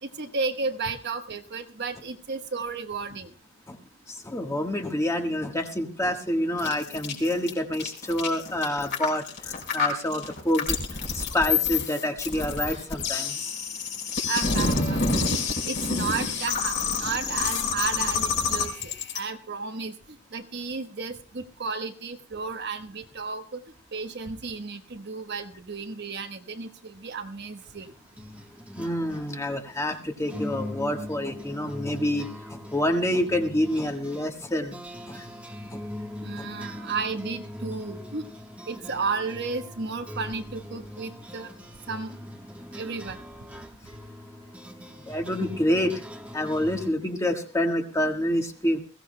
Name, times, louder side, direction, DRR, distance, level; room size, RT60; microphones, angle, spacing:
voice 1, 0.0-3.3 14.3-23.6 23.9-27.9 36.2-38.2 38.7-41.5 41.9-42.1 42.7-43.2, right 4 dB, 55° right, 7 dB, 1.1 m, -33 dB
voice 2, 4.1-10.8 11.1-13.4 28.8-34.8 35.1-35.2 35.7-35.8 36.4-36.5 45.1-45.9 46.3-48.8, left 1 dB, 15° left, 4 dB, 1.4 m, -27 dB
sound 1, 6.6-19.2, left 5 dB, 60° left, 4.8 m, -28 dB
sound 2, 27.4-46.9, left 1 dB, 5° right, 1.1 m, -41 dB
21.5 x 16.5 x 2.2 m, 0.39 s
head